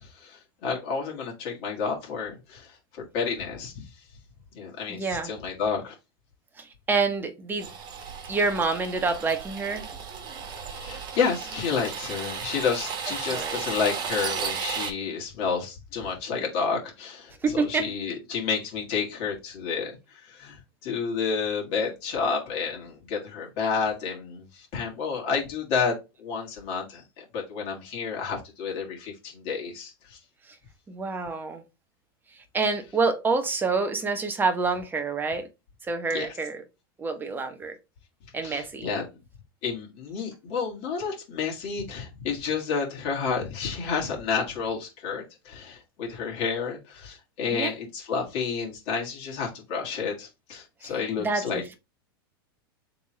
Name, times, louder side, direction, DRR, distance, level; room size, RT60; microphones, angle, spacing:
voice 1, 0.0-2.7 3.1-3.8 4.5-5.9 10.7-30.2 36.1-36.3 38.4-39.0 39.6-51.6, left 5 dB, 50° left, 1.7 m, -30 dB
voice 2, 4.9-5.3 6.6-7.7 8.3-9.9 13.3-13.6 17.4-17.9 30.9-31.6 32.5-35.5 35.9-36.6 37.0-37.8 38.3-38.9 47.5-47.7 50.8-51.7, right 4 dB, 15° right, 1.0 m, -27 dB
sound 1, 7.6-14.9, right 6 dB, 35° right, 1.1 m, -34 dB
3.6 x 3.0 x 4.4 m
hypercardioid pair, 115°, 12 cm